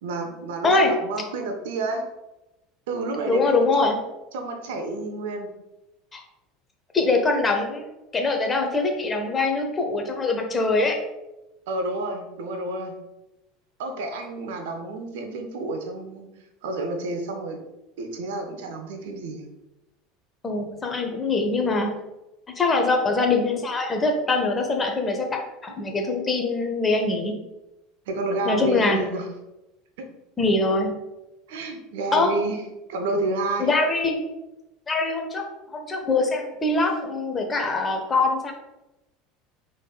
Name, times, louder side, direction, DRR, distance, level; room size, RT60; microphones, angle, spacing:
voice 1, 0.0-2.0 2.9-3.6 4.3-5.5 11.7-12.9 13.8-16.3 16.6-17.6 18.0-19.5 28.1-29.3 30.0-30.1 31.5-32.6 32.9-33.7, right 2 dB, 70° right, 5 dB, 0.7 m, -29 dB
voice 2, 3.2-4.0 6.1-6.2 6.9-7.8 8.1-11.0 20.4-21.9 22.6-27.4 28.4-29.1 30.4-30.9 32.1-32.3 33.6-34.2 34.9-38.5, left 3 dB, 25° left, 3 dB, 0.9 m, -23 dB
5.1 x 3.8 x 2.3 m, 0.96 s
hypercardioid pair, 75°, 0 cm